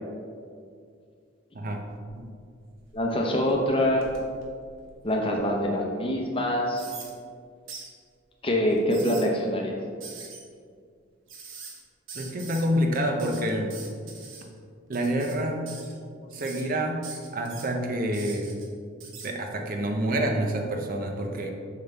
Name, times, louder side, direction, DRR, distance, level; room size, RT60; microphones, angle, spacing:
sound 1, 2.0-2.3 2.8-5.4 5.9-6.0 6.7-7.1 7.7-7.9 8.7-9.3 10.0-10.4 11.3-11.8 12.1-12.7 12.9-14.4 14.9-15.4 15.7-16.0 16.3-16.6 17.0-17.7 18.1-18.7 19.0-19.3, right 5 dB, 70° right, 1.1 m, -43 dB
voice 1, 2.9-4.1 5.0-6.8 8.4-9.7, left 1 dB, 25° left, 0 dB, 0.8 m, -25 dB
voice 2, 12.1-13.7 14.9-15.7 16.2-17.0 17.3-18.6 19.2-21.5, right 1 dB, 45° right, 3 dB, 0.6 m, -27 dB
7.2 x 5.6 x 3.4 m, 2.2 s
head